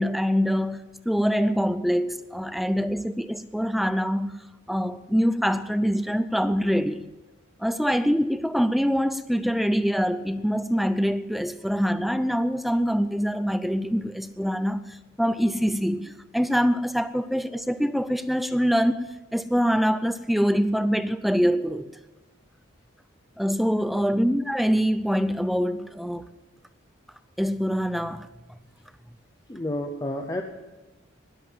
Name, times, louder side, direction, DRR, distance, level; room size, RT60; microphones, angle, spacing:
voice 1, 0.0-4.4 4.7-7.1 7.6-19.0 19.3-21.9 23.4-26.3 27.4-28.3, equal, ahead, 0.4 m, -24 dB
voice 2, 29.5-30.4, left 1 dB, 20° left, 0.8 m, -31 dB
20.0 x 7.6 x 7.4 m
head